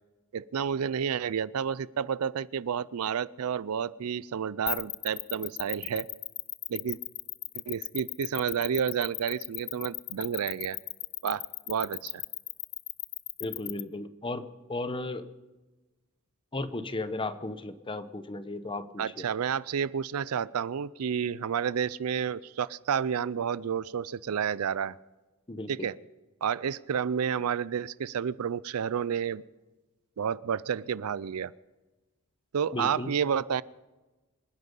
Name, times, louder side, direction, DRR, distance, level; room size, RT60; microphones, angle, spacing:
voice 1, 0.3-6.1 6.7-7.0 7.7-10.8 11.2-12.2 19.0-24.9 25.7-26.0 26.4-29.4 30.2-31.5 32.5-33.6, right 7 dB, 85° right, 20 dB, 0.4 m, -30 dB
sound 1, 4.7-13.8, left 19 dB, 65° left, 0.6 m, -35 dB
voice 2, 13.4-14.4 14.7-15.2 16.5-19.3 25.5-25.9 32.7-33.1, left 2 dB, 25° left, 12 dB, 0.8 m, -35 dB
25.5 x 9.7 x 5.4 m, 1.1 s
head